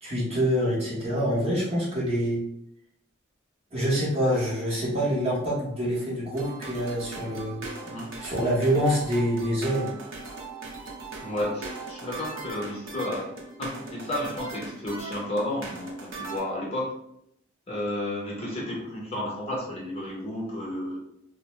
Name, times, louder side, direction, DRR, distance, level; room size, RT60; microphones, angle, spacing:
voice 1, 0.0-2.4 3.7-7.6 8.2-9.9, equal, 30° right, -6 dB, 0.8 m, -26 dB
sound 1, 6.3-16.4, right 3 dB, 70° right, 0.6 m, -39 dB
voice 2, 11.2-13.3 13.6-16.9 17.7-21.0, left 1 dB, 30° left, -4 dB, 0.7 m, -32 dB
2.5 x 2.0 x 3.0 m, 0.76 s
head